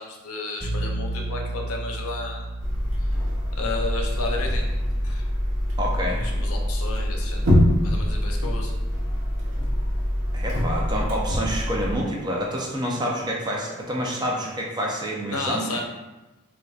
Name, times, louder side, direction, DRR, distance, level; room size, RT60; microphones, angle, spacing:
voice 1, 0.0-2.5 3.0-3.1 3.6-4.7 5.0-5.3 6.2-7.4 7.8-8.7 15.3-15.8, left 3 dB, 85° left, 1 dB, 0.5 m, -32 dB
sound 1, 0.6-6.4, right 2 dB, 10° left, 1.2 m, -34 dB
sound 2, 2.6-12.0, equal, 60° right, 0.7 m, -24 dB
voice 2, 5.8-6.2 10.3-15.6, equal, 20° right, -2 dB, 0.4 m, -28 dB
4.0 x 2.2 x 2.3 m, 1.1 s
head